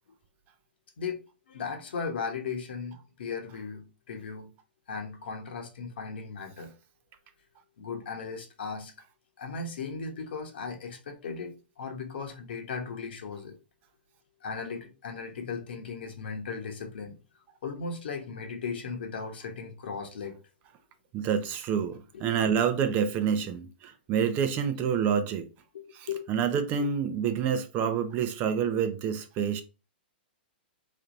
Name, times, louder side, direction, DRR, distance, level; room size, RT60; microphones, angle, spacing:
voice 1, 1.0-4.5 4.9-6.7 7.8-8.9 9.4-13.6 14.4-17.2 17.6-20.4 25.7-26.2 26.8-26.9, left 5 dB, 70° left, 1.2 m, -37 dB
voice 2, 21.1-25.5 25.9-29.6, right 7 dB, 30° right, 0.6 m, -28 dB
3.2 x 2.7 x 3.9 m
hypercardioid pair, 130°, 6 cm